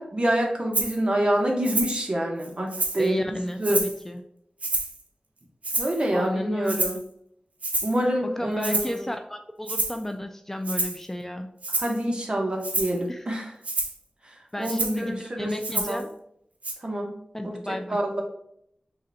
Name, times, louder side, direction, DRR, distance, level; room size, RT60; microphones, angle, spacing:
voice 1, 0.0-3.2 3.6-3.8 5.8-7.0 7.8-9.0 11.8-13.5 14.6-16.0 16.8-17.1 17.9-18.2, right 1 dB, 40° right, 0 dB, 1.0 m, -26 dB
Rattle (instrument), 0.7-1.0 1.6-2.0 2.4-3.1 3.6-4.0 4.6-5.0 5.6-6.1 6.7-7.0 7.6-8.0 8.6-9.0 9.7-10.0 10.6-11.0 11.6-12.0 12.6-13.0 13.6-14.0 14.6-15.0 15.6-16.0 16.6-16.7, right 2 dB, 65° right, 0.8 m, -28 dB
voice 2, 3.0-4.2 6.1-6.9 8.3-11.6 13.1-13.3 14.5-16.1 17.3-18.0, left 1 dB, 15° left, 5 dB, 0.3 m, -33 dB
3.8 x 3.2 x 4.0 m, 0.73 s
wide cardioid pair, 80°, 3 cm